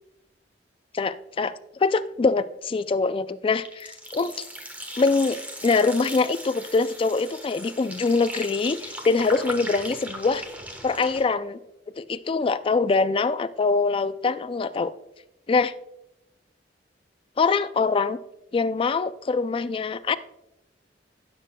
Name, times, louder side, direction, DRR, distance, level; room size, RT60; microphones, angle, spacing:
voice 1, 0.9-4.3 5.0-10.4 10.8-11.6 12.0-14.9 15.5-15.7 17.4-18.2 18.5-20.2, left 4 dB, 30° left, 12 dB, 0.3 m, -24 dB
sound 1, 3.6-11.2, equal, 10° right, 1.2 m, -38 dB
16.0 x 6.7 x 2.2 m, 0.87 s
head